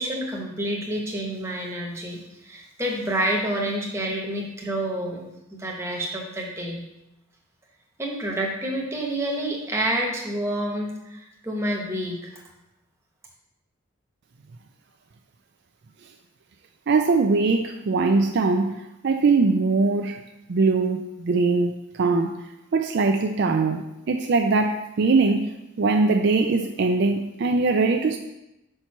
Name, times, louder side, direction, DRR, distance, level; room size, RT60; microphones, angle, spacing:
voice 1, 0.0-5.3 5.6-6.8 8.0-12.3, right 1 dB, 10° right, -1 dB, 1.0 m, -28 dB
voice 2, 16.9-22.4 22.7-28.2, right 3 dB, 50° right, 4 dB, 0.4 m, -22 dB
5.5 x 4.4 x 5.8 m, 0.92 s
head